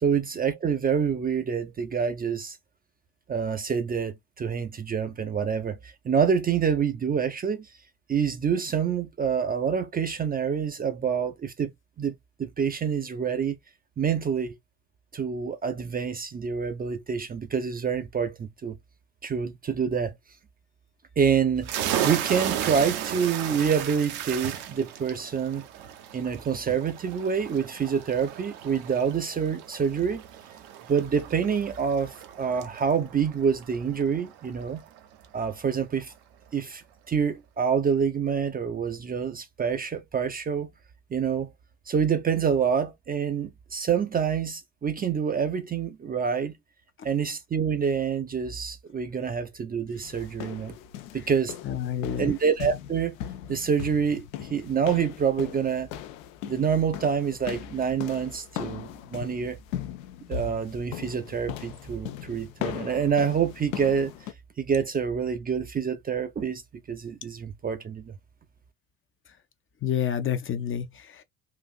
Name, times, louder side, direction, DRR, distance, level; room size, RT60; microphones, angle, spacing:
voice 1, 0.0-2.6 3.3-7.7 8.1-11.7 12.0-13.6 14.0-14.6 15.1-18.8 19.2-20.1 21.2-21.7 22.0-25.7 26.1-30.2 30.9-34.8 35.3-36.1 36.5-36.8 37.1-40.7 41.1-41.5 41.9-46.5 47.0-50.8 51.1-51.6 52.2-53.2 53.5-55.9 56.4-59.6 60.3-64.1 64.6-66.6 66.9-68.1, right 7 dB, 20° right, 0.5 m, -27 dB
sound 1, 21.6-35.0, right 10 dB, 65° right, 0.8 m, -35 dB
sound 2, 50.0-64.3, left 10 dB, 75° left, 0.6 m, -39 dB
voice 2, 51.6-52.3 69.8-71.2, left 9 dB, 30° left, 0.6 m, -29 dB
3.9 x 2.5 x 2.4 m
hypercardioid pair, 60°, 41 cm